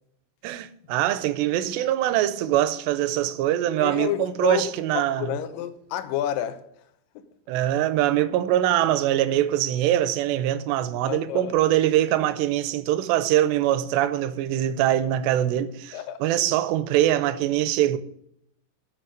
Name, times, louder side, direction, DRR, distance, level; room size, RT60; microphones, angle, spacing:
voice 1, 0.4-5.3 7.5-16.0 16.2-18.0, right 12 dB, 85° right, 2.7 m, -23 dB
voice 2, 3.8-4.7 4.9-6.7 7.2-7.3 11.1-11.6 15.9-16.3, left 11 dB, 80° left, 2.0 m, -29 dB
9.1 x 6.9 x 6.4 m
omnidirectional pair, 5.1 m